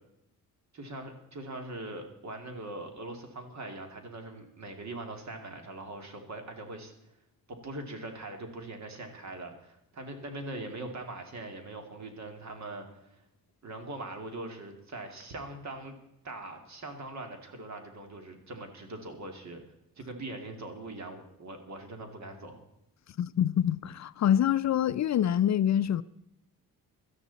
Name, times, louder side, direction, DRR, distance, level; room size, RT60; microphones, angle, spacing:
voice 1, 0.7-6.9 7.5-13.2 13.6-16.0 16.2-19.6 20.0-22.6, right 2 dB, 50° right, 2.6 m, -41 dB
voice 2, 23.2-26.0, left 10 dB, 50° left, 0.5 m, -26 dB
17.5 x 13.0 x 4.2 m
cardioid pair, 115°, 35 cm